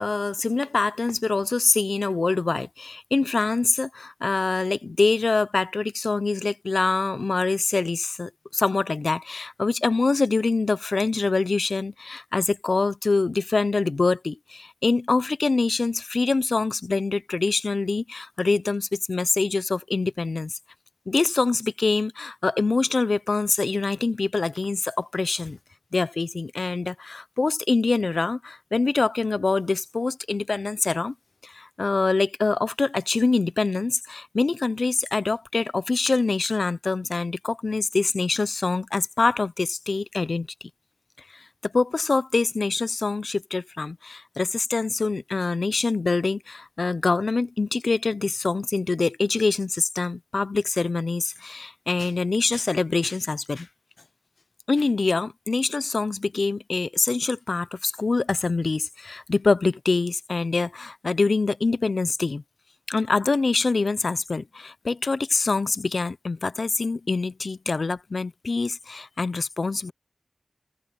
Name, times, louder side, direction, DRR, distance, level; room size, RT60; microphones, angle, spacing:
voice 1, 0.0-20.6 21.1-25.6 25.9-31.1 31.4-40.7 41.3-53.7 54.7-62.4 62.9-69.9, left 3 dB, 70° left, 0.7 m, -25 dB
cardioid pair, 45°, 0 cm